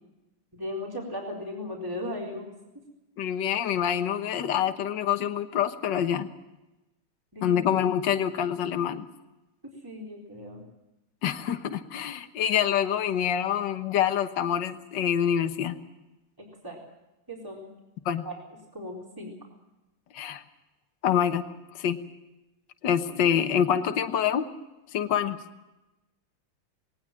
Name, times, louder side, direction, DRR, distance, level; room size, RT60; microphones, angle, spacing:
voice 1, 0.6-2.5 7.3-7.6 9.8-10.6 16.4-16.8 17.3-17.7 18.2-18.3 18.7-19.4, left 1 dB, 10° right, -1 dB, 4.1 m, -37 dB
voice 2, 3.2-6.3 7.4-9.1 11.2-15.8 18.0-18.2 20.1-20.4 21.0-21.4 21.7-22.0 22.8-24.5 24.9-25.4, left 9 dB, 60° left, 8 dB, 1.7 m, -26 dB
20.0 x 19.0 x 7.5 m, 0.99 s
omnidirectional pair, 2.3 m